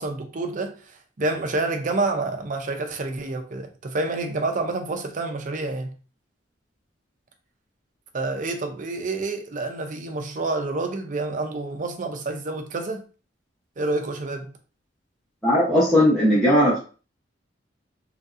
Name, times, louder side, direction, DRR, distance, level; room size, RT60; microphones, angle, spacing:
voice 1, 0.0-5.9 8.1-13.0 13.8-14.5, right 2 dB, 45° right, 0.5 m, -28 dB
voice 2, 15.4-16.8, equal, ahead, 0.8 m, -18 dB
3.1 x 2.6 x 2.4 m
head